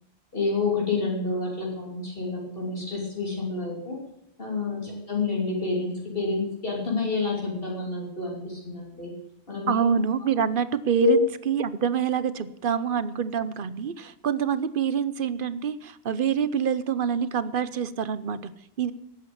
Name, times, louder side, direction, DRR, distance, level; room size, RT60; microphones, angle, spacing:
voice 1, 0.3-4.0 4.4-9.1 9.5-9.7 11.0-11.2, left 4 dB, 55° left, -3 dB, 3.2 m, -28 dB
voice 2, 9.7-18.9, right 7 dB, 55° right, 15 dB, 0.9 m, -26 dB
12.5 x 8.6 x 8.7 m, 0.82 s
omnidirectional pair, 1.1 m